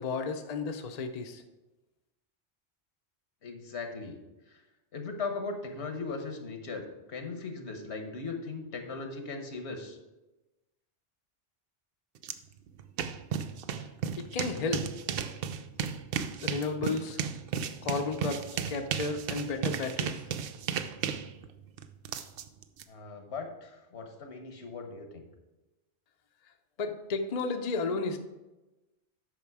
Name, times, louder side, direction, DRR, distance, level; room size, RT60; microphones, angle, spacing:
voice 1, 0.0-1.4 14.2-14.9 16.4-17.2 17.8-20.2 26.8-28.2, left 4 dB, 45° left, 5 dB, 0.7 m, -33 dB
voice 2, 3.4-4.2 4.5-4.6 4.9-6.8 7.1-10.0 22.9-25.3, left 4 dB, 80° left, 5 dB, 1.4 m, -38 dB
sound 1, 12.2-12.3 12.7-22.8, right 7 dB, 65° right, 0.7 m, -34 dB
8.7 x 5.8 x 4.7 m, 1.1 s
omnidirectional pair, 1.1 m